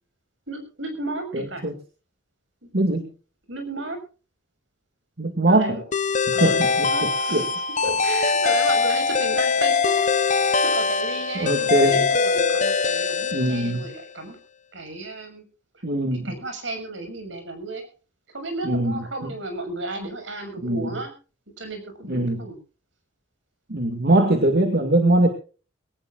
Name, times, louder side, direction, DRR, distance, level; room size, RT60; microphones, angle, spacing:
voice 1, 0.5-1.6 2.6-2.7 3.5-4.0 5.5-5.8 6.3-7.5 8.0-14.4 14.7-15.4 15.7-15.8 16.1-17.9 18.3-21.1 21.6-22.6, right 2 dB, 75° right, 6 dB, 6.6 m, -33 dB
voice 2, 1.3-1.7 2.7-3.1 5.2-5.8 6.4-6.9 7.3-7.4 7.8-7.9 11.4-12.0 13.3-13.8 15.8-16.3 18.6-18.9 20.6-20.8 22.1-22.4 23.7-25.3, right 1 dB, 55° right, 5 dB, 2.3 m, -21 dB
sound 1, 5.9-14.0, left 5 dB, 40° left, 0.8 m, -22 dB
22.5 x 18.5 x 2.5 m, 0.36 s
head